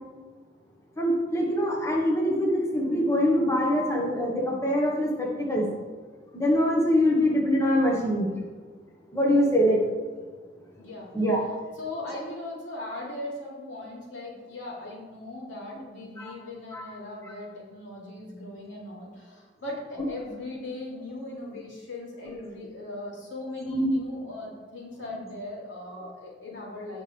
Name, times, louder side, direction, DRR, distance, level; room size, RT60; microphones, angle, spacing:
voice 1, 1.0-5.7 6.3-8.3 9.1-9.8 11.1-11.4 16.2-16.3 16.7-16.8 17.2-17.3 22.2-22.3 23.7-23.9, equal, 15° left, -2 dB, 1.5 m, -24 dB
voice 2, 10.8-27.0, left 2 dB, 90° left, -4 dB, 3.3 m, -39 dB
17.0 x 5.9 x 3.5 m, 1.5 s
head